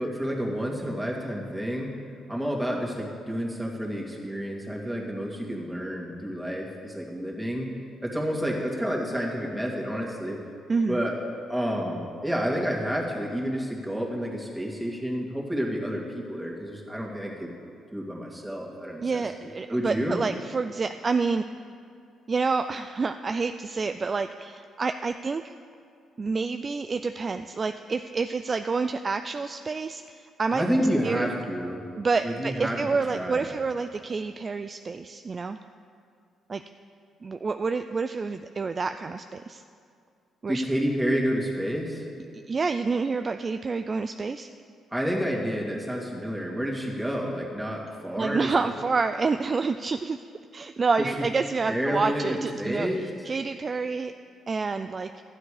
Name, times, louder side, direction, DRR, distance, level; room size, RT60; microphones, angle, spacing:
voice 1, 0.0-2.0 2.3-7.7 8.0-10.4 10.9-11.2 11.5-17.5 17.9-19.2 19.7-20.2 30.5-31.8 32.2-32.8 33.1-33.5 40.5-42.1 44.9-48.5 51.0-51.2 51.7-52.3 52.6-53.0, equal, 5° right, -2 dB, 2.1 m, -29 dB
voice 2, 10.7-11.0 19.0-21.4 22.3-25.5 26.2-30.6 31.0-31.3 31.9-35.6 36.5-36.6 37.2-39.6 40.4-40.6 42.3-44.5 48.1-50.2 50.5-52.9 53.2-54.1 54.5-55.1, right 4 dB, 35° right, 8 dB, 0.3 m, -28 dB
12.5 x 9.5 x 4.9 m, 2.4 s
cardioid pair, 90°, 0 cm